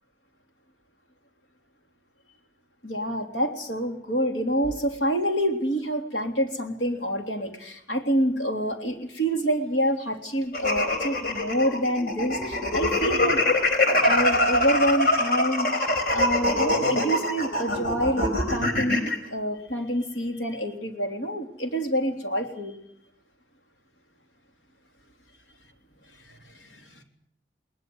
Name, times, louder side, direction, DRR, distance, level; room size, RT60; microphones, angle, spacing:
voice 1, 2.8-13.4 14.0-15.9 16.1-22.8 26.2-27.0, equal, 75° left, 3 dB, 3.4 m, -27 dB
sound 1, 10.5-19.2, left 1 dB, 55° left, 4.1 m, -24 dB
21.0 x 19.5 x 8.0 m, 0.76 s
head